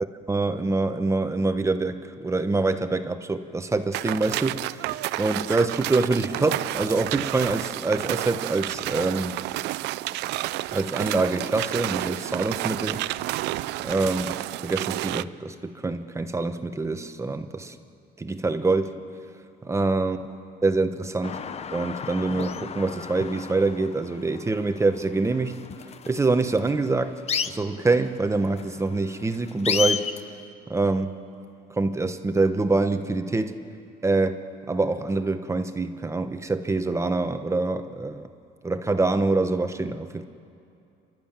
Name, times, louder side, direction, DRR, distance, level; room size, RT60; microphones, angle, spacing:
voice 1, 0.3-4.9 5.2-9.4 10.7-13.0 13.8-17.8 18.2-19.0 19.6-20.2 20.6-21.4 21.7-25.6 26.1-30.1 30.7-31.1 31.7-33.6 34.0-38.3 38.6-40.2, right 3 dB, 15° right, 8 dB, 1.1 m, -25 dB
sound 1, 3.9-15.2, right 16 dB, 85° right, 0.5 m, -30 dB
sound 2, 21.2-30.2, left 7 dB, 40° left, 0.8 m, -33 dB
30.0 x 12.0 x 9.0 m, 2.6 s
cardioid pair, 110°, 17 cm